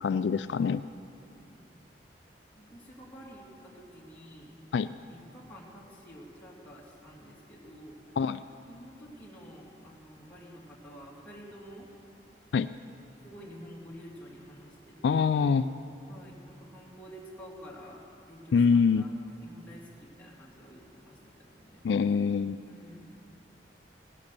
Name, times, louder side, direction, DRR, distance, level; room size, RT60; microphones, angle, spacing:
voice 1, 0.0-0.8 4.7-4.9 8.2-8.4 12.5-12.7 15.0-15.7 18.5-19.1 21.8-22.6, left 5 dB, 70° left, 13 dB, 0.3 m, -24 dB
voice 2, 1.2-1.7 2.6-7.9 8.7-11.9 13.2-15.4 16.1-21.8 22.6-23.2, equal, 10° left, -5 dB, 2.7 m, -49 dB
17.5 x 10.5 x 6.8 m, 2.5 s
head